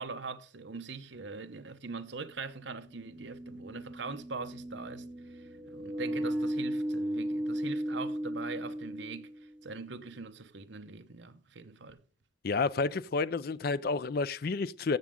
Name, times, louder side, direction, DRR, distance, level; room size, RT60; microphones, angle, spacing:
voice 1, 0.0-12.0, right 4 dB, 65° right, 1.0 m, -42 dB
sound 1, 1.2-1.3 2.7-9.6, right 1 dB, 25° right, 2.4 m, -36 dB
voice 2, 12.4-15.0, left 4 dB, 50° left, 0.4 m, -30 dB
14.5 x 7.3 x 3.7 m
head